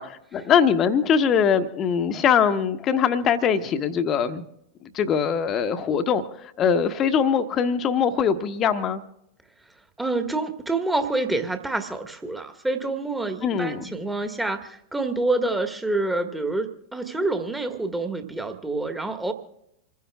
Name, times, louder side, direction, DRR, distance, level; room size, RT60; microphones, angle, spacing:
voice 1, 0.0-4.4 4.9-6.2 6.6-9.0 13.4-13.8, left 7 dB, 30° left, 9 dB, 1.2 m, -22 dB
voice 2, 10.0-19.3, right 2 dB, 5° right, 6 dB, 1.6 m, -27 dB
28.0 x 15.5 x 2.4 m, 0.80 s
figure-of-eight pair, 90°, 0 cm